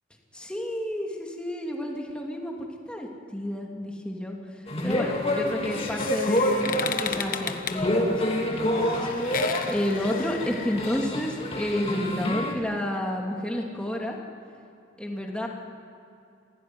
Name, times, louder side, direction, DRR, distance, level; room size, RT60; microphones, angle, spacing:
voice 1, 0.3-14.2 15.0-15.5, left 1 dB, 5° left, 0 dB, 2.7 m, -31 dB
sound 1, 4.7-12.5, left 1 dB, 30° left, 2.5 m, -28 dB
sound 2, 5.5-11.0, left 7 dB, 45° left, 1.2 m, -35 dB
26.5 x 17.0 x 9.5 m, 2.6 s
head